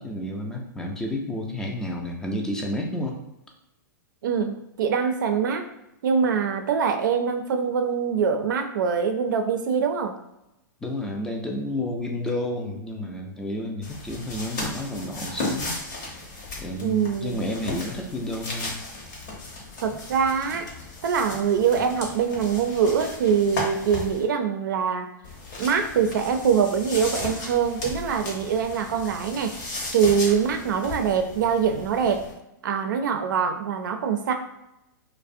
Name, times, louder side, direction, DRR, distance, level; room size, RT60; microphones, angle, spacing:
voice 1, 0.0-3.2 10.8-15.8 16.6-18.8, left 1 dB, 5° left, 1 dB, 0.4 m, -31 dB
voice 2, 4.2-5.7 6.0-10.1 16.8-17.5 19.8-20.7 21.0-25.1 25.6-29.5 29.9-32.2 32.6-34.3, right 6 dB, 75° right, 6 dB, 0.4 m, -24 dB
sound 1, 13.8-24.2 25.2-32.3, left 2 dB, 60° left, 0.9 m, -36 dB
2.4 x 2.0 x 2.5 m, 0.89 s
hypercardioid pair, 125°, 10 cm